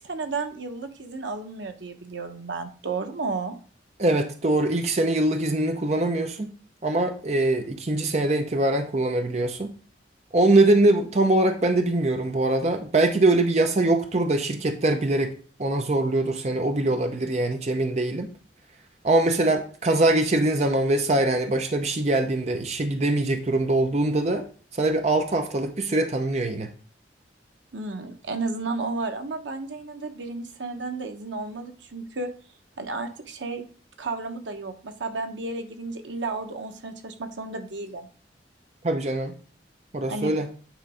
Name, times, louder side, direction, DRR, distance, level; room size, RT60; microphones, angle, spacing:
voice 1, 0.0-3.6 27.7-32.3 32.8-33.7 34.0-38.1 40.1-40.3, right 3 dB, 85° right, 6 dB, 1.0 m, -32 dB
voice 2, 4.0-6.5 6.8-9.7 10.3-15.3 15.6-18.3 19.0-24.5 24.7-26.7 38.8-39.3 39.9-40.5, right 2 dB, 40° right, 5 dB, 0.6 m, -23 dB
8.9 x 3.1 x 4.9 m, 0.41 s
head